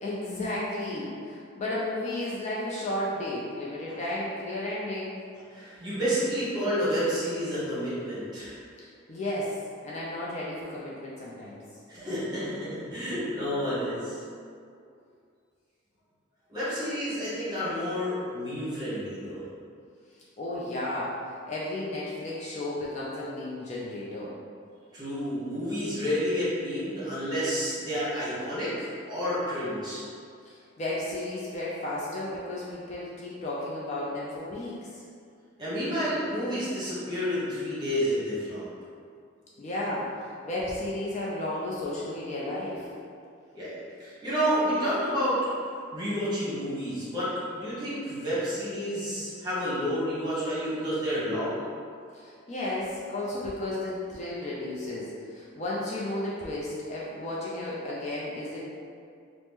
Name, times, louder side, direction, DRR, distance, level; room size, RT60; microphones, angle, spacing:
voice 1, 0.0-5.2 8.8-9.6 9.8-11.6 20.4-24.3 30.4-35.0 39.6-42.9 52.1-58.6, left 1 dB, 35° left, -6 dB, 0.4 m, -33 dB
voice 2, 5.5-8.5 11.9-14.2 16.5-19.4 24.9-30.0 35.6-38.6 43.5-43.7 44.0-45.5 45.9-51.6, equal, 20° right, -11 dB, 1.0 m, -30 dB
2.9 x 2.0 x 3.4 m, 2.3 s
head